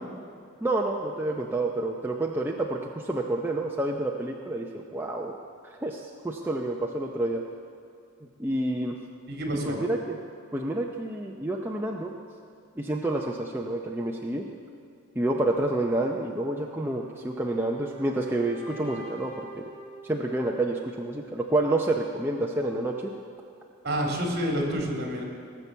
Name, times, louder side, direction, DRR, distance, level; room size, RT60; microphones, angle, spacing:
voice 1, 0.6-5.3 5.6-7.4 8.4-8.9 9.6-10.2 10.5-12.1 12.8-14.5 15.2-19.7 20.1-23.1, right 2 dB, 10° right, -1 dB, 0.6 m, -29 dB
voice 2, 9.3-9.8 23.8-25.2, equal, 50° right, 0 dB, 2.5 m, -28 dB
sound 1, 16.9-20.9, right 3 dB, 35° left, 3.7 m, -45 dB
18.0 x 6.9 x 7.3 m, 2.5 s
head